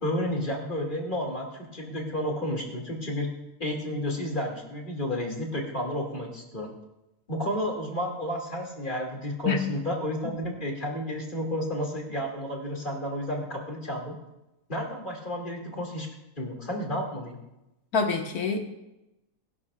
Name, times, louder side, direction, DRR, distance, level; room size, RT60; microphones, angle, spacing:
voice 1, 0.0-3.3 3.6-6.7 7.3-14.2 14.7-16.1 16.4-17.4, equal, 35° left, 0 dB, 2.7 m, -31 dB
voice 2, 17.9-18.6, left 5 dB, 85° left, 3 dB, 2.0 m, -25 dB
22.5 x 12.0 x 2.5 m, 0.95 s
omnidirectional pair, 1.5 m